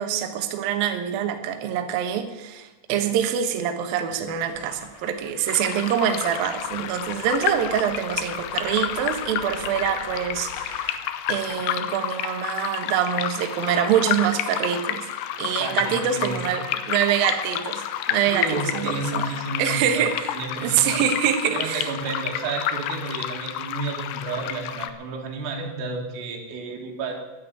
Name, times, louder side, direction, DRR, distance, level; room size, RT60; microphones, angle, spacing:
voice 1, 0.0-15.1 15.4-19.3 19.6-21.9, right 9 dB, 70° right, 6 dB, 2.4 m, -25 dB
sound 1, 4.2-10.9 11.3-11.8, left 2 dB, 35° left, 4.8 m, -45 dB
sound 2, 5.5-24.9, left 11 dB, 85° left, 2.2 m, -30 dB
voice 2, 15.6-16.5 18.3-20.1 20.3-21.0 21.5-27.1, right 4 dB, 85° right, 1 dB, 4.8 m, -31 dB
11.0 x 11.0 x 9.4 m, 1.1 s
omnidirectional pair, 5.7 m